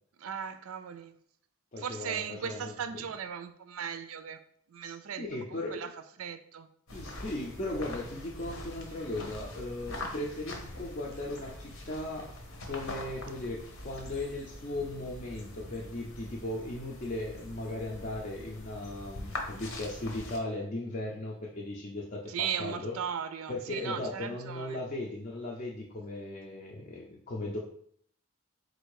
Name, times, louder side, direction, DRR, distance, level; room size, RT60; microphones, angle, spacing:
voice 1, 0.2-1.1 1.8-4.4 4.7-5.9 6.2-6.7 22.3-24.8, right 8 dB, 80° right, 11 dB, 0.4 m, -37 dB
voice 2, 1.7-3.1 4.8-5.9 6.9-12.3 12.7-23.0 23.5-27.6, left 1 dB, 35° left, -3 dB, 0.5 m, -37 dB
sound 1, 6.9-20.4, left 2 dB, 70° left, 0.9 m, -43 dB
4.2 x 2.6 x 4.7 m, 0.64 s
head